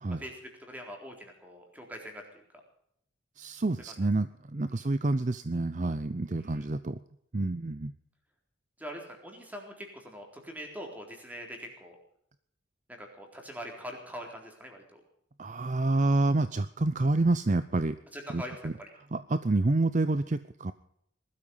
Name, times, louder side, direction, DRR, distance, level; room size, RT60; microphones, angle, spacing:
voice 1, 0.1-2.4 4.0-4.1 4.7-4.9 6.4-6.7 8.8-12.0 12.9-15.0 18.1-18.9, equal, 10° right, 2 dB, 3.8 m, -43 dB
voice 2, 3.4-7.0 7.3-7.9 15.4-18.0 18.3-18.7 19.1-20.7, right 2 dB, 40° right, 13 dB, 0.6 m, -28 dB
20.0 x 13.0 x 5.5 m, 0.72 s
head